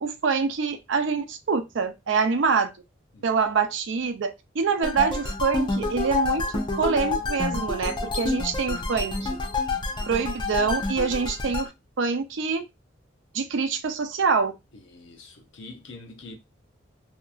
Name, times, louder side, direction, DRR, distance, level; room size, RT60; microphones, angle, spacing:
voice 1, 0.0-2.7 3.2-9.3 10.1-11.7 12.0-12.6 13.3-14.5, right 5 dB, 70° right, 0.5 m, -25 dB
sound 1, 4.8-11.7, left 3 dB, 25° left, 0.5 m, -28 dB
voice 2, 14.7-16.3, left 3 dB, 70° left, 0.7 m, -45 dB
2.8 x 2.4 x 2.3 m
head